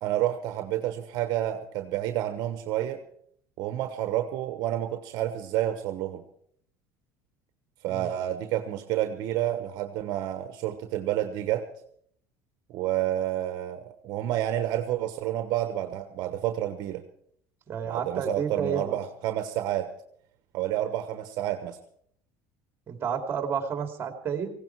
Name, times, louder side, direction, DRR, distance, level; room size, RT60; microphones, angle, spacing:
voice 1, 0.0-3.0 3.6-6.2 7.8-11.7 12.7-17.0 17.8-19.9 20.5-21.8, right 12 dB, 60° right, 8 dB, 1.1 m, -29 dB
voice 2, 17.7-19.0 22.9-24.5, right 7 dB, 30° right, 5 dB, 2.9 m, -30 dB
18.5 x 16.0 x 4.7 m, 0.65 s
cardioid pair, 130°, 8 cm